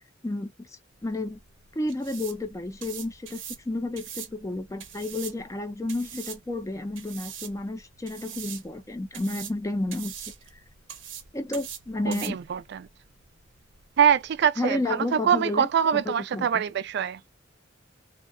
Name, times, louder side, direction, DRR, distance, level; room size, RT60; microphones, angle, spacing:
voice 1, 0.2-0.7 1.0-1.4 1.7-10.2 11.3-12.4 14.6-16.6, left 2 dB, 15° left, 0.4 m, -31 dB
sound 1, 0.9-14.4, right 8 dB, 90° right, 0.7 m, -43 dB
voice 2, 12.1-12.9 14.0-17.2, right 8 dB, 60° right, 0.3 m, -24 dB
2.7 x 2.1 x 2.4 m
head